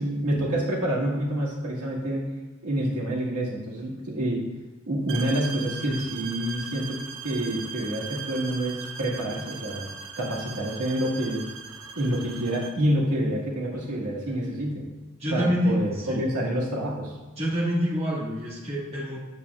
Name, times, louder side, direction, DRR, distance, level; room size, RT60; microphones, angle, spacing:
voice 1, 0.0-2.2 2.6-4.4 4.9-9.9 10.2-11.4 11.9-14.8 15.3-17.1, right 1 dB, 85° right, -5 dB, 1.8 m, -27 dB
sound 1, 5.1-12.8, right 6 dB, 60° right, 0.6 m, -38 dB
voice 2, 15.2-16.2 17.4-19.2, equal, 30° right, -6 dB, 1.6 m, -26 dB
8.7 x 6.8 x 2.4 m, 1.2 s
head